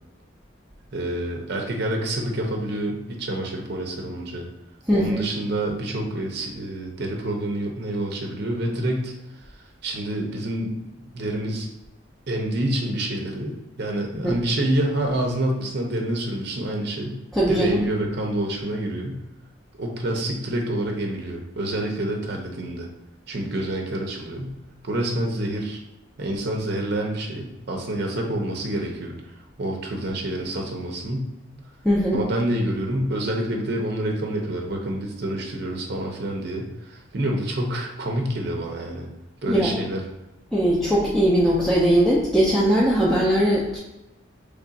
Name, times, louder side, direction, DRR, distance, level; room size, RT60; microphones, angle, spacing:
voice 1, 0.9-4.5 4.9-9.1 9.8-10.8 11.1-11.7 12.3-17.2 17.5-19.2 19.8-22.9 23.3-24.5 24.8-25.8 26.2-29.2 29.6-31.2 32.1-39.1 39.4-40.0, right 1 dB, 55° right, 1 dB, 0.6 m, -27 dB
voice 2, 4.9-5.2 14.1-14.3 17.3-17.8 31.8-32.2 39.5-39.8 40.5-43.8, equal, ahead, -8 dB, 0.5 m, -20 dB
3.3 x 2.4 x 3.9 m, 0.99 s
head